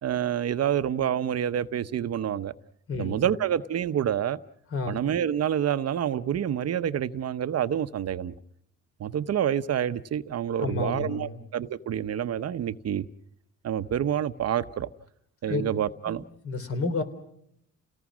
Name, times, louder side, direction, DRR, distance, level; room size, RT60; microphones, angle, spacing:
voice 1, 0.0-2.5 3.0-4.4 4.9-8.3 9.0-13.1 13.6-14.9 15.4-16.2, right 9 dB, 55° right, 13 dB, 0.9 m, -28 dB
voice 2, 2.9-3.3 4.7-5.0 10.6-11.4 15.5-15.6 16.1-17.0, left 3 dB, 50° left, 8 dB, 3.5 m, -31 dB
30.0 x 18.5 x 6.2 m, 0.73 s
cardioid pair, 90°, 30 cm